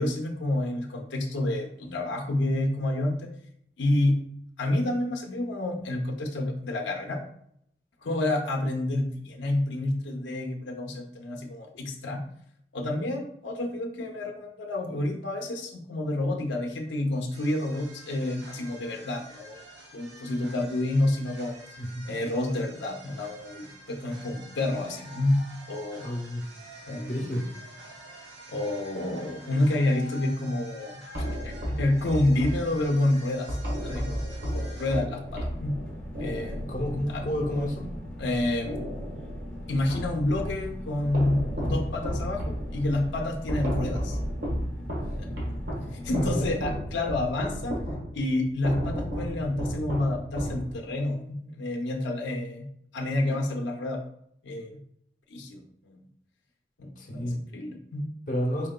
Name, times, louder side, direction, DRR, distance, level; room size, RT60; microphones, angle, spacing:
voice 1, 0.0-3.1 3.8-4.2 4.6-7.2 8.0-12.2 12.7-19.6 19.9-21.6 22.0-25.4 25.7-26.1 26.9-27.4 28.5-31.0 31.4-33.5 33.8-35.8 36.2-37.2 38.2-38.8 39.7-44.2 45.2-45.4 45.9-47.8 48.1-52.7 52.9-54.0 54.4-54.8 55.3-56.0 56.8-58.1, left 1 dB, 90° left, 2 dB, 0.6 m, -29 dB
sound 1, 17.3-35.0, right 1 dB, 70° right, 0.8 m, -48 dB
voice 2, 26.0-26.4 27.1-27.5 36.7-37.9 45.8-45.9 46.3-46.5 57.0-57.4 58.3-58.7, equal, 45° left, 1 dB, 0.7 m, -30 dB
sound 2, 31.1-38.3 38.6-40.7 41.1-51.1, equal, 85° right, 1.4 m, -34 dB
sound 3, 35.2-46.6, equal, 5° left, 0.5 m, -39 dB
4.4 x 3.7 x 2.2 m, 0.69 s
head